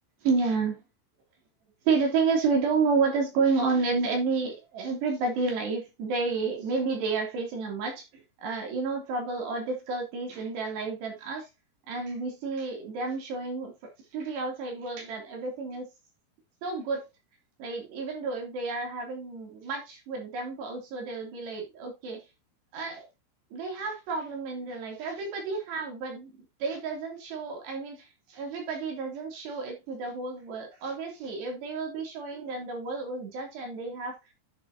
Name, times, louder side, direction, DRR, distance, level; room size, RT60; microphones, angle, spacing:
voice 1, 0.2-0.8 1.9-11.5 11.9-13.7 14.1-15.9 16.6-17.1 17.6-22.2 22.7-23.1 23.5-26.3 26.6-34.2, right 4 dB, 60° right, 5.0 m, -30 dB
10.5 x 7.3 x 2.9 m
omnidirectional pair, 5.9 m